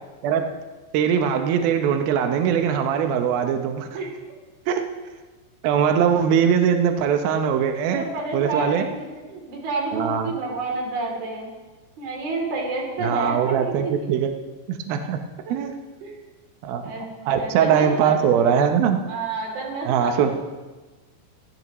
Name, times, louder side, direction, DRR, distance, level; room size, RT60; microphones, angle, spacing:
voice 1, 0.9-4.0 4.7-4.8 5.6-8.0 8.3-8.9 9.9-10.3 13.0-14.3 14.7-15.2 15.5-15.8 16.6-16.8 17.3-19.0 19.9-20.3, right 8 dB, 80° right, 5 dB, 2.2 m, -21 dB
voice 2, 7.9-11.5 12.0-13.9 15.4-15.7 16.0-16.2 16.8-17.1 17.4-18.2 19.1-20.3, right 3 dB, 55° right, -1 dB, 4.7 m, -29 dB
25.5 x 13.5 x 3.1 m, 1.3 s
omnidirectional pair, 5.4 m